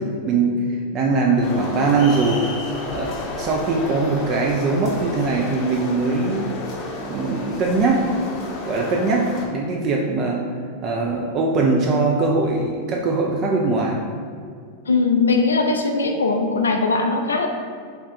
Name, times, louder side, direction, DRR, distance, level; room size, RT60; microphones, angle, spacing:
voice 1, 0.0-2.5 2.9-3.1 3.4-6.5 7.1-8.1 8.6-10.4 10.8-14.0, right 3 dB, 35° right, 0 dB, 0.3 m, -21 dB
sound 1, 1.4-9.5, left 2 dB, 35° left, 0.7 m, -31 dB
voice 2, 14.9-17.5, left 3 dB, 70° left, 4 dB, 0.4 m, -20 dB
3.5 x 2.3 x 4.3 m, 2.1 s
figure-of-eight pair, 90°, 0 cm